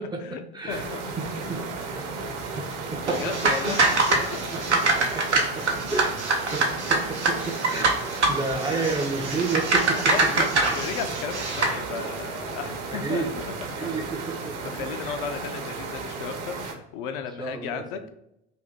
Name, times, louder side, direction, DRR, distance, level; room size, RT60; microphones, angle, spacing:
voice 1, 0.0-0.9 1.2-1.6 1.9-2.1 2.6-3.8 4.1-6.2 6.5-10.5 12.9-15.2 17.4-18.1, right 3 dB, 15° right, 2 dB, 0.4 m, -32 dB
voice 2, 0.7-1.0 3.1-3.8 4.1-4.7 8.6-8.9 9.9-13.5 14.3-18.1, left 7 dB, 55° left, 7 dB, 0.4 m, -35 dB
sound 1, 0.7-16.7, right 4 dB, 50° right, 0.7 m, -34 dB
sound 2, 3.0-11.8, right 3 dB, 90° right, 0.6 m, -25 dB
2.7 x 2.6 x 3.6 m, 0.82 s
figure-of-eight pair, 60°, 33 cm